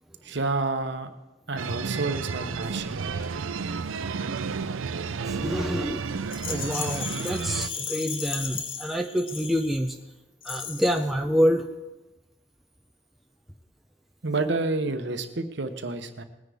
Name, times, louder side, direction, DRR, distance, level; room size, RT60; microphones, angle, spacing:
voice 1, 0.2-1.1 1.5-3.0 14.2-16.2, right 3 dB, 60° right, 8 dB, 1.0 m, -29 dB
sound 1, 1.6-7.7, right 5 dB, 85° right, 0.5 m, -32 dB
voice 2, 5.3-10.0 10.4-11.8, equal, ahead, 2 dB, 0.6 m, -27 dB
Rattle, 6.3-9.9 10.4-11.1, left 7 dB, 45° left, 0.9 m, -35 dB
19.5 x 10.0 x 3.5 m, 1.0 s
head